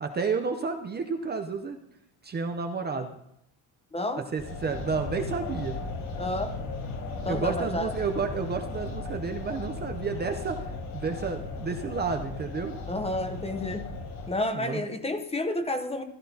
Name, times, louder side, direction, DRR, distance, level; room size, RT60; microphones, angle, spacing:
voice 1, 0.0-1.8 2.2-3.2 4.3-5.8 7.3-12.7 14.5-14.8, right 5 dB, 25° right, 5 dB, 0.6 m, -31 dB
voice 2, 3.9-4.2 6.2-6.6 7.2-7.9 12.9-13.9 14.3-16.0, left 1 dB, 15° left, 7 dB, 0.7 m, -30 dB
sound 1, 4.4-14.3, left 3 dB, 70° left, 5.5 m, -36 dB
15.5 x 12.5 x 2.8 m, 0.79 s
cardioid pair, 155°, 42 cm